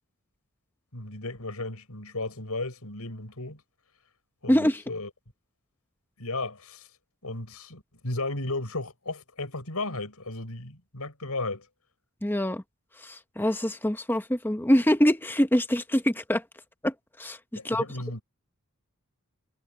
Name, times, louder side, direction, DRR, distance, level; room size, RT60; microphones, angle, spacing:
voice 1, 0.9-3.6 4.4-5.1 6.2-6.9 7.2-11.7 17.5-18.2, left 2 dB, 80° left, 5.8 m, -34 dB
voice 2, 4.5-4.8 12.2-12.6 13.0-16.4 16.8-17.4 17.6-17.8, equal, 10° left, 0.9 m, -24 dB
head